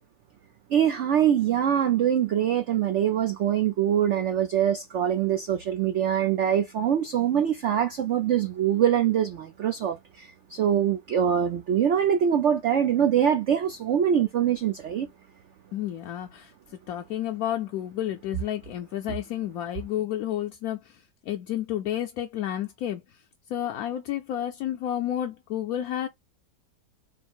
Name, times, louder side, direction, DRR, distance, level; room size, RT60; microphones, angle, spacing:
voice 1, 0.7-15.1, right 9 dB, 85° right, 0.6 m, -24 dB
voice 2, 15.7-16.5 16.9-21.0 21.3-23.0 23.5-26.1, left 11 dB, 70° left, 0.9 m, -31 dB
3.9 x 2.0 x 4.4 m
omnidirectional pair, 1.9 m